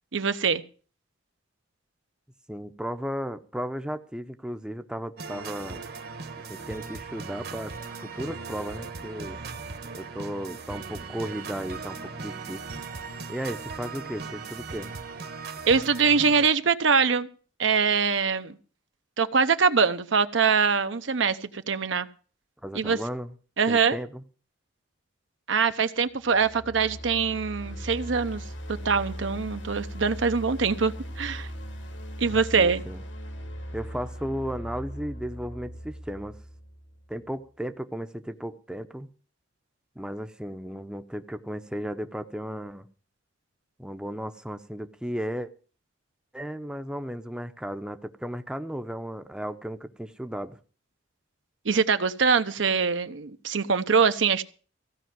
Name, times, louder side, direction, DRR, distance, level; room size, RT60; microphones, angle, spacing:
voice 1, 0.1-0.6 15.7-17.3 17.6-18.6 19.2-22.1 22.7-23.0 23.6-24.0 25.5-28.4 28.8-31.5 32.2-32.8 51.6-54.4, right 5 dB, 75° right, 0.8 m, -23 dB
voice 2, 2.5-5.8 6.5-7.7 8.0-9.4 9.9-12.8 13.3-14.9 22.6-23.3 23.7-24.2 32.2-33.0 33.7-36.4 37.1-39.1 40.0-42.9 43.8-45.5 46.3-50.6, equal, 5° right, 0.7 m, -35 dB
sound 1, 5.2-16.5, right 4 dB, 55° right, 1.3 m, -38 dB
sound 2, 26.2-37.3, equal, 70° left, 1.8 m, -39 dB
16.0 x 5.5 x 9.3 m
head